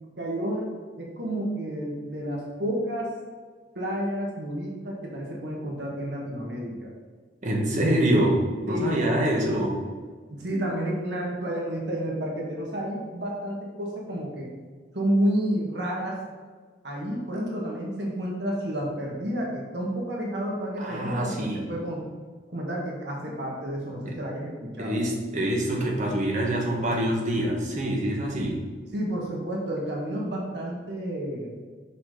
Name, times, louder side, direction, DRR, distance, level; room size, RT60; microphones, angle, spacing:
voice 1, 0.2-0.7 1.0-3.1 3.7-6.9 8.7-9.1 10.3-14.5 14.9-16.2 16.8-22.1 22.5-25.0 28.9-31.5, right 1 dB, 70° right, -2 dB, 1.5 m, -30 dB
voice 2, 7.4-9.8 20.8-21.6 24.0-24.1 24.8-28.6, right 1 dB, 45° right, -1 dB, 1.3 m, -25 dB
6.1 x 5.8 x 3.8 m, 1.5 s
head